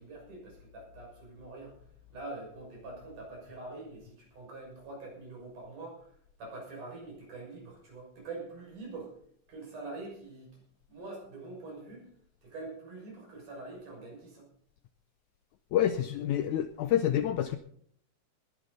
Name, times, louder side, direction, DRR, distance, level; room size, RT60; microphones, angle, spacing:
voice 1, 0.0-1.7 2.1-6.1 6.4-9.1 9.5-10.6 10.9-12.1 12.4-14.5, right 2 dB, 65° right, -1 dB, 7.8 m, -44 dB
voice 2, 15.7-17.6, left 11 dB, 75° left, 10 dB, 1.9 m, -28 dB
20.0 x 12.0 x 4.1 m, 0.63 s
omnidirectional pair, 3.9 m